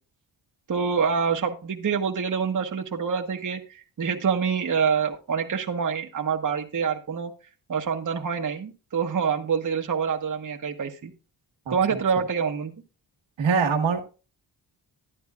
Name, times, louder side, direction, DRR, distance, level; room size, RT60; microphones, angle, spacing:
voice 1, 0.7-7.3 7.7-11.1 11.7-12.7, right 6 dB, 40° right, 3 dB, 1.0 m, -26 dB
voice 2, 11.7-12.0 13.4-14.0, right 5 dB, 75° right, 2 dB, 1.6 m, -24 dB
11.0 x 10.0 x 2.3 m, 0.32 s
cardioid pair, 55°, 47 cm